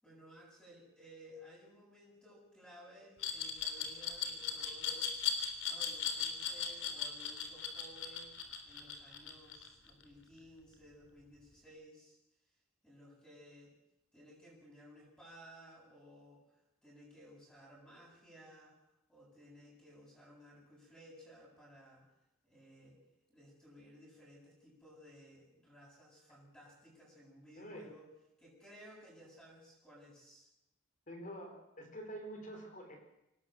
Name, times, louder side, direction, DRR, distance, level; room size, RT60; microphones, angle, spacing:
voice 1, 0.0-5.1 5.6-12.2 12.8-13.7 14.1-16.4 16.8-18.8 19.1-22.0 22.4-23.0 23.3-28.1 28.4-30.5, equal, 5° left, -5 dB, 8.0 m, -57 dB
Glass, 3.2-10.0, left 7 dB, 65° left, 3.6 m, -37 dB
voice 2, 27.6-27.9 31.1-33.0, right 1 dB, 40° left, 5 dB, 4.4 m, -47 dB
24.5 x 19.0 x 7.9 m, 0.86 s
head